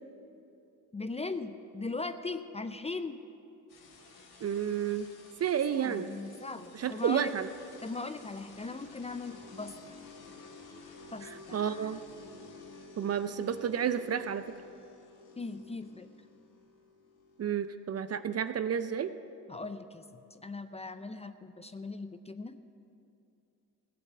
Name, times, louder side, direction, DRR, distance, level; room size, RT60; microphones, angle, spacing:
voice 1, 0.9-3.2 5.7-7.3 7.8-10.0 11.1-12.0 15.4-16.1 19.5-22.6, left 3 dB, 15° left, 10 dB, 0.6 m, -39 dB
sound 1, 3.7-18.2, left 4 dB, 60° left, 2.4 m, -52 dB
voice 2, 4.4-5.1 5.4-6.1 6.7-7.5 11.5-12.0 13.0-14.5 17.4-19.1, right 8 dB, 35° right, 12 dB, 0.6 m, -31 dB
15.5 x 7.7 x 7.7 m, 2.7 s
hypercardioid pair, 60°, 42 cm